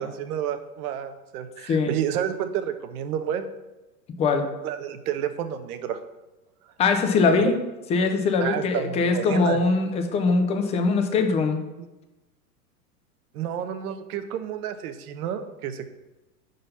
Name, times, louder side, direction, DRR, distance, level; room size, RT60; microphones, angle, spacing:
voice 1, 0.0-3.5 4.6-6.0 6.6-6.7 7.3-7.6 8.4-9.6 11.8-11.9 13.3-15.8, right 9 dB, 60° right, 8 dB, 0.9 m, -30 dB
voice 2, 6.8-7.5 7.9-11.6, left 4 dB, 15° left, 6 dB, 0.3 m, -22 dB
5.2 x 3.9 x 5.6 m, 1.0 s
hypercardioid pair, 105°, 50 cm